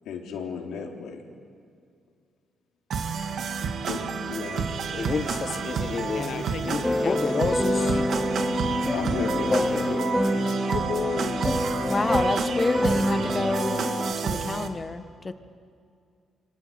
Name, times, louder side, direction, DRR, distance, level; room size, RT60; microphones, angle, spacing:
voice 1, 0.1-1.2 3.8-4.7 5.1-6.1 8.9-10.1 14.3-14.4 14.7-14.8, left 5 dB, 80° left, 2 dB, 3.7 m, -35 dB
sound 1, 2.9-14.7, right 6 dB, 65° right, 2.2 m, -30 dB
Male speech man speaking, 4.9-8.0 9.3-10.0, left 5 dB, 40° left, 1.3 m, -31 dB
voice 2, 6.1-8.3 10.7-11.4, left 8 dB, 65° left, 14 dB, 1.0 m, -35 dB
sound 2, 6.8-14.1, left 1 dB, 10° left, 2.8 m, -26 dB
voice 3, 11.9-15.3, left 3 dB, 25° left, 10 dB, 1.7 m, -29 dB
27.0 x 24.5 x 8.9 m, 2.3 s
cardioid pair, 90°, 0 cm